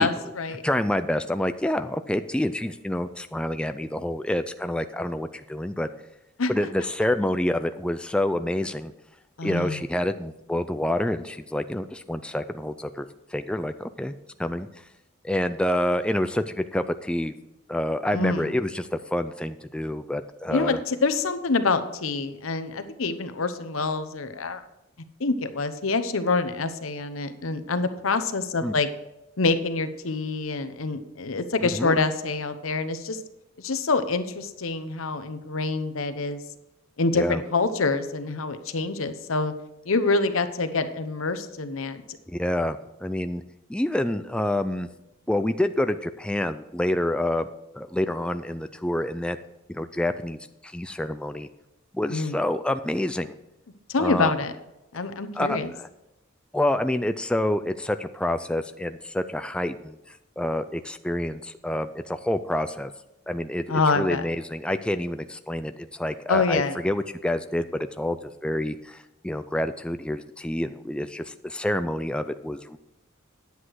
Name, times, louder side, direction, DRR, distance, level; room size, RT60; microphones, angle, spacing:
voice 1, 0.0-0.6 6.4-6.5 9.4-9.8 18.1-18.5 20.5-24.6 25.2-28.9 29.4-33.2 33.6-36.4 37.0-39.5 39.9-42.0 52.1-52.4 53.9-54.5 54.9-55.7 63.7-64.2 66.3-66.8, left 3 dB, 90° left, 10 dB, 0.9 m, -26 dB
voice 2, 0.6-5.9 6.5-8.9 9.4-14.1 14.4-14.7 15.2-17.3 17.7-20.8 28.6-28.7 31.7-32.0 37.1-37.4 42.3-43.4 43.7-44.9 45.3-49.4 49.7-50.4 50.6-51.5 51.9-53.3 54.0-54.3 55.3-55.9 56.5-62.9 63.3-72.8, left 1 dB, 5° left, 9 dB, 0.3 m, -27 dB
9.9 x 8.2 x 4.7 m, 0.91 s
head